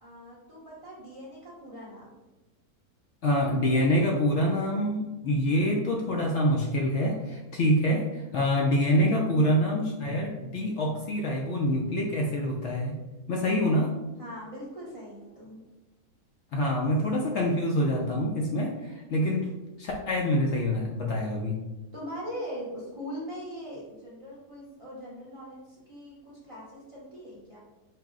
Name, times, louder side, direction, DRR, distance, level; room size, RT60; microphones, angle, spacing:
voice 1, 0.0-2.2 14.2-15.7 21.9-27.6, equal, 40° right, -8 dB, 0.5 m, -41 dB
voice 2, 3.2-13.0 13.3-13.9 16.5-19.4 19.8-21.6, equal, 75° left, -1 dB, 0.6 m, -26 dB
4.6 x 2.0 x 3.6 m, 1.1 s
omnidirectional pair, 1.7 m